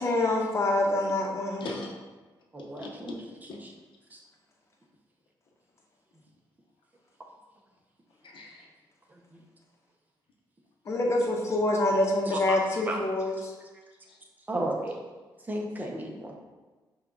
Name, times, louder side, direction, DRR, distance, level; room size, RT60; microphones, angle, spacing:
voice 1, 0.0-1.7 10.9-13.5, left 2 dB, 35° left, 0 dB, 0.9 m, -26 dB
voice 2, 1.6-2.0 2.6-3.7 8.2-8.7 10.8-11.0 13.4-13.5 14.1-14.2, left 2 dB, 75° left, 0 dB, 0.9 m, -42 dB
voice 3, 2.5-3.2 4.1-4.2 12.5-12.6 12.9-13.0 14.5-15.0 15.5-16.4, right 1 dB, 20° right, 0 dB, 0.8 m, -33 dB
5.8 x 2.4 x 3.8 m, 1.3 s
cardioid pair, 100°, 8 cm